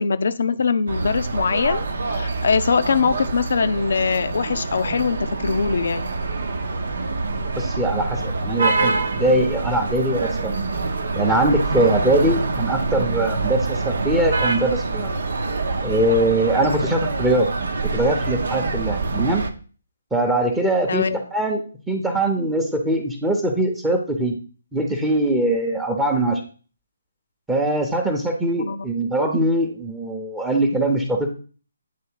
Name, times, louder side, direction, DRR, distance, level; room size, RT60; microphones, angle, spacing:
voice 1, 0.0-6.1 20.9-21.2 28.5-28.8, left 5 dB, 60° left, 11 dB, 0.7 m, -22 dB
sound 1, 0.9-19.5, right 3 dB, 60° right, 0.8 m, -25 dB
voice 2, 7.6-10.6 11.2-15.2 15.8-17.5 17.8-19.5 20.1-24.4 24.7-26.4 27.5-31.3, right 1 dB, 5° right, 2 dB, 0.9 m, -22 dB
9.3 x 3.2 x 4.6 m, 0.39 s
figure-of-eight pair, 140°, 0 cm